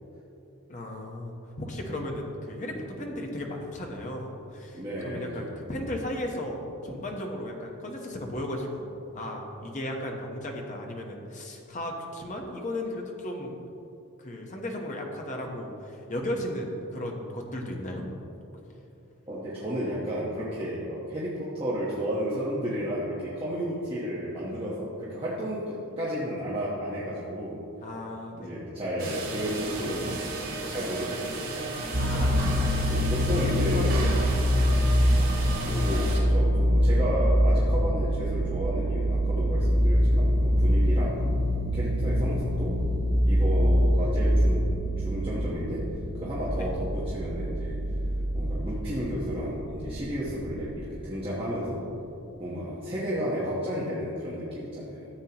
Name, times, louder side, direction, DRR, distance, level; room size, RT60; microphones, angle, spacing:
voice 1, 0.7-13.6 14.2-18.1 27.8-28.5 32.0-33.0 33.4-34.1 46.6-46.7, left 1 dB, 35° left, 1 dB, 1.0 m, -35 dB
voice 2, 4.7-5.5 19.3-27.6 28.3-30.2 30.7-31.5 31.9-32.0 32.9-34.0 34.4-34.5 35.6-41.2 41.7-42.8 43.3-44.6 45.0-45.8 46.2-47.8 48.3-51.8 52.4-55.1, equal, 25° right, -8 dB, 1.2 m, -32 dB
sound 1, 29.0-36.2, right 2 dB, 80° right, 2.2 m, -34 dB
sound 2, 31.9-50.8, equal, 60° right, 1.1 m, -25 dB
13.0 x 7.8 x 2.9 m, 2.9 s
head